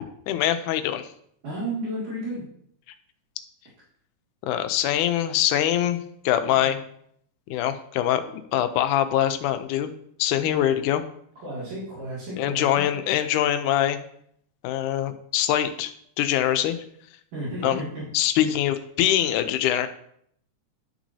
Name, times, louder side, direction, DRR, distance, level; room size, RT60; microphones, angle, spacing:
voice 1, 0.3-1.1 4.4-6.8 7.5-9.9 10.2-11.0 12.4-14.0 14.6-16.8 17.6-17.8 18.1-19.9, left 11 dB, 85° left, 10 dB, 2.1 m, -23 dB
voice 2, 1.4-2.5 6.6-6.7 11.4-12.8 17.3-18.0 18.4-18.5, right 1 dB, 70° right, -9 dB, 3.8 m, -32 dB
11.0 x 6.0 x 2.8 m, 0.68 s
omnidirectional pair, 3.5 m